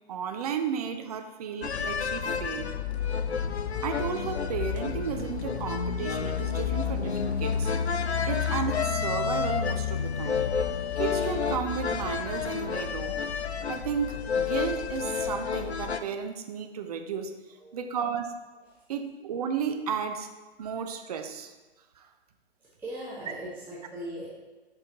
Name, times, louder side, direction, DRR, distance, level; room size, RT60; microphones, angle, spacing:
voice 1, 0.1-2.7 3.8-7.7 8.3-10.5 11.0-13.1 13.7-17.3 17.7-18.4 18.9-20.3 20.6-21.5 22.0-22.1, right 7 dB, 40° right, 6 dB, 0.5 m, -33 dB
sound 1, 1.6-16.0, left 6 dB, 90° left, 0.5 m, -30 dB
voice 2, 17.6-17.9 18.7-18.8 22.6-24.3, right 1 dB, 5° right, -8 dB, 0.8 m, -40 dB
6.2 x 4.4 x 3.7 m, 1.2 s
figure-of-eight pair, 120°, 32 cm